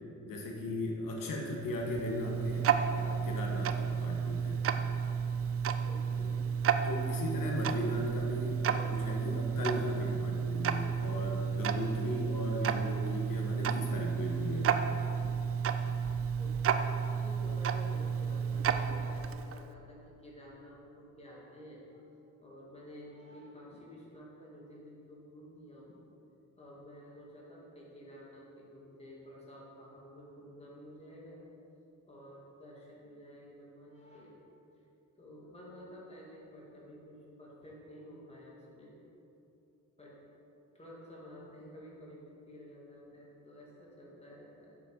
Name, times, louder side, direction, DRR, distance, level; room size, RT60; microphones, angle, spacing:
voice 1, 0.3-4.7 6.2-6.3 6.8-14.9, left 1 dB, 80° left, 0 dB, 1.5 m, -37 dB
Tick-tock, 1.4-19.7, right 7 dB, 45° right, 0.5 m, -32 dB
voice 2, 5.8-6.4 12.3-12.5 16.4-16.6 16.8-16.9 17.2-22.0 22.4-26.0 26.6-31.4 32.1-34.4 35.2-38.9 40.0-40.2 40.7-44.8, equal, 20° left, -5 dB, 2.1 m, -51 dB
7.9 x 7.4 x 6.6 m, 2.8 s
wide cardioid pair, 160°, 33 cm